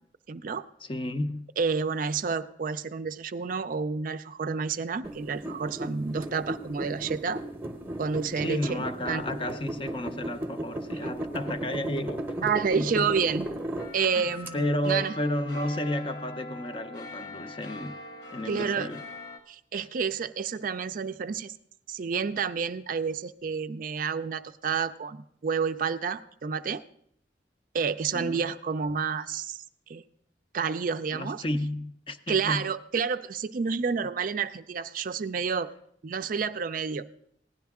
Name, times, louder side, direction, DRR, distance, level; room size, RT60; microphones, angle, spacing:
voice 1, 0.3-0.6 1.6-7.4 8.0-9.2 12.4-13.5 13.9-15.1 18.5-18.9 19.5-21.5 21.9-26.8 27.7-29.6 29.9-30.0 30.5-31.4 32.3-35.7 36.0-37.1, right 5 dB, 50° right, 0.4 m, -29 dB
voice 2, 0.8-1.5 8.4-13.1 14.1-18.0 18.3-19.1 19.8-19.9 28.1-28.4 31.1-32.7, left 1 dB, 30° left, 0.5 m, -32 dB
sound 1, 5.0-14.5, right 1 dB, 10° right, 0.8 m, -36 dB
sound 2, 13.8-19.4, left 2 dB, 75° left, 1.6 m, -43 dB
16.0 x 10.5 x 3.6 m
head